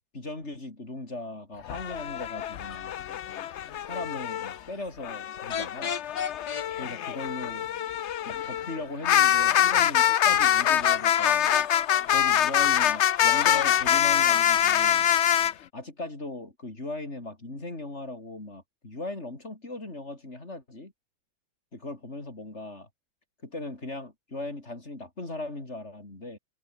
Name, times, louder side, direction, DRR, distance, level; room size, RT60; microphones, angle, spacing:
voice 1, 0.0-2.9 3.9-6.0 6.8-7.7 8.2-11.5 12.1-15.1 15.7-20.9 21.7-22.9 23.4-26.4, left 2 dB, 35° left, 4.9 m, -38 dB
sound 1, 1.7-4.6 5.0-15.5, left 10 dB, 80° left, 0.6 m, -24 dB
sound 2, 5.5-6.7 10.8-11.7 13.3-13.7, left 7 dB, 55° left, 2.0 m, -32 dB
omnidirectional pair, 2.1 m